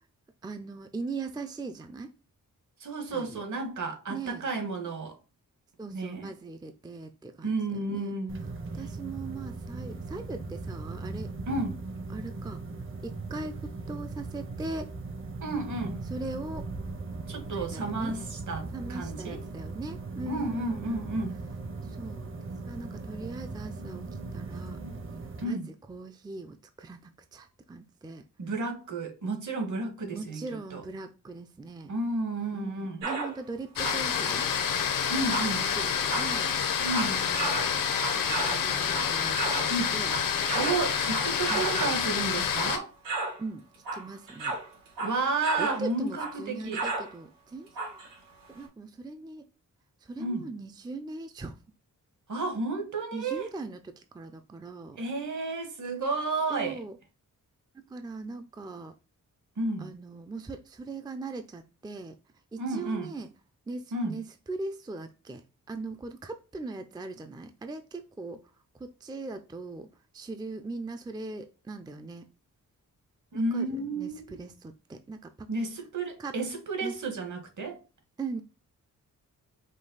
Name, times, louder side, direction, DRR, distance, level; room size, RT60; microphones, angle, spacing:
voice 1, 0.4-2.1 3.1-3.4 4.1-4.4 5.8-8.2 8.7-11.3 12.1-12.6 13.0-14.9 16.1-16.6 17.5-18.1 18.7-21.1 21.9-22.3 22.6-24.1 24.3-24.8 25.4-25.6 25.9-28.2 30.1-31.9 32.5-34.5 35.5-36.5 37.1-37.8 38.1-39.7 39.9-40.1 41.5-41.7 43.4-43.7 43.9-44.6 45.6-48.0 48.5-49.4 50.0-51.6 53.1-55.0 56.5-57.0 57.7-58.9 59.8-62.2 62.5-63.3 63.7-68.4 68.8-69.9 70.1-72.3 73.3-75.5 76.2-76.3 76.8-77.0 78.2-78.4, right 3 dB, 10° right, 0.4 m, -40 dB
voice 2, 2.8-5.2 5.8-6.3 7.4-8.4 11.5-11.8 15.4-16.1 17.3-19.4 20.3-21.4 25.4-25.7 28.4-30.4 30.7-30.8 31.9-33.0 35.1-35.7 36.8-37.2 39.7-39.9 40.5-42.9 45.0-46.9 50.2-50.5 52.3-53.5 55.0-56.8 59.6-59.9 62.6-63.1 63.9-64.2 73.3-74.4 75.5-77.8, right 3 dB, 60° right, 1.5 m, -32 dB
sound 1, 8.3-25.4, right 3 dB, 35° right, 0.8 m, -39 dB
sound 2, 33.0-33.4 33.7-39.7 40.0-42.0 42.5-42.8 43.0-43.4 43.7-45.9 46.2-46.4 46.7-47.1 47.7-48.1 48.6-48.7, right 3 dB, 85° right, 2.6 m, -34 dB
sound 3, 33.8-42.8, left 7 dB, 70° left, 0.8 m, -28 dB
5.3 x 2.3 x 3.9 m
cardioid pair, 80°, 34 cm